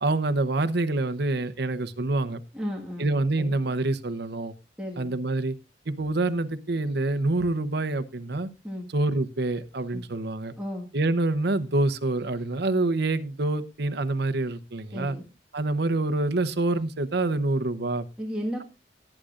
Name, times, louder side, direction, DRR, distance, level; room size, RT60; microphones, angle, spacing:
voice 1, 0.0-2.4 3.0-4.5 5.0-5.5 5.9-8.5 8.9-10.5 10.9-15.2 15.5-18.1, right 2 dB, 60° right, 11 dB, 0.9 m, -26 dB
voice 2, 2.5-3.1 3.4-3.5 4.8-5.1 8.6-8.9 9.9-10.0 10.6-10.9 14.9-15.3 18.2-18.6, equal, 5° right, -3 dB, 1.7 m, -33 dB
18.0 x 10.0 x 2.5 m, 0.28 s
head